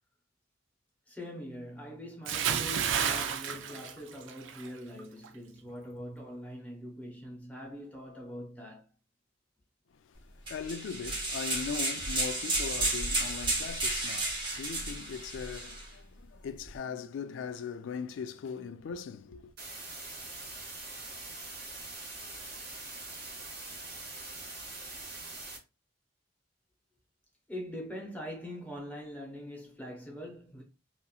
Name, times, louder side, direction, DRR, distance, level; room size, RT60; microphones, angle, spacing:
voice 1, 1.1-8.8 27.5-30.6, equal, 10° left, 0.7 m, -43 dB
Bathtub (filling or washing) / Splash splatter, 2.3-4.7 5.0-5.3, right 7 dB, 80° right, 0.4 m, -31 dB
voice 2, 10.5-19.5, left 6 dB, 75° left, 0.3 m, -39 dB
sound 1, 10.5-15.9, right 2 dB, 25° right, 0.7 m, -32 dB
sound 2, 19.6-25.6, right 2 dB, 55° right, 0.9 m, -43 dB
2.9 x 2.4 x 2.3 m
head